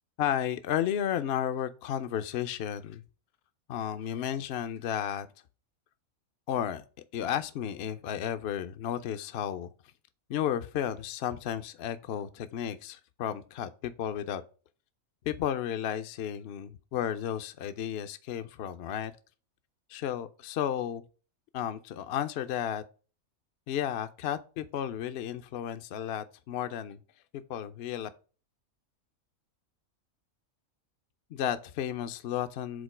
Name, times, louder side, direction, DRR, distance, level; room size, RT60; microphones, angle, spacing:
voice 1, 0.2-3.0 3.7-5.3 6.5-6.8 7.1-9.7 10.3-14.4 15.2-19.1 19.9-21.0 21.5-22.8 23.7-27.0 27.5-28.1 31.3-32.8, left 10 dB, 65° left, 0.6 m, -33 dB
5.1 x 3.8 x 4.8 m
omnidirectional pair, 1.5 m